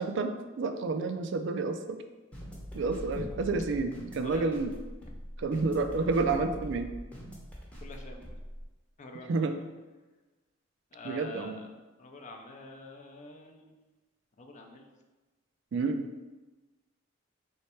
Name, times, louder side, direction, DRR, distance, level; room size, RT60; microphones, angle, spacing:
voice 1, 0.0-2.0 2.7-4.7 5.4-6.9 9.3-9.6 11.0-11.6 15.7-16.1, right 3 dB, 65° right, 7 dB, 0.4 m, -30 dB
sound 1, 2.3-8.6, equal, 5° left, 0.7 m, -43 dB
voice 2, 4.2-4.5 7.8-8.3 9.0-9.5 10.9-11.7 12.0-13.7 14.4-14.9, left 2 dB, 35° left, 3 dB, 0.5 m, -45 dB
3.2 x 3.2 x 4.3 m, 1.2 s
head